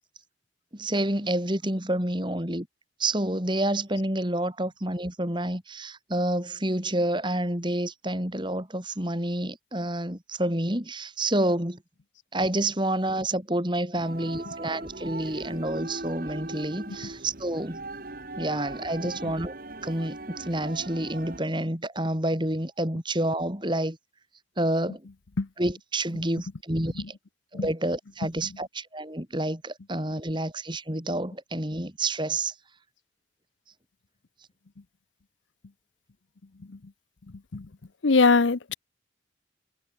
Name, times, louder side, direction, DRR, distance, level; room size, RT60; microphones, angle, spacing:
voice 1, 0.7-2.7 3.0-11.8 12.3-17.8 18.4-19.5 19.8-24.0 24.6-25.0 25.6-27.0 27.5-32.5, right 1 dB, 25° right, 3.6 m, -28 dB
sound 1, 13.9-21.4, right 2 dB, 50° right, 2.3 m, -39 dB
voice 2, 19.0-19.3 24.9-25.5 26.1-26.2 26.9-27.1 27.5-27.7 28.2-28.6 36.7-36.8 37.5-37.7 38.0-38.7, left 4 dB, 75° left, 0.8 m, -25 dB
head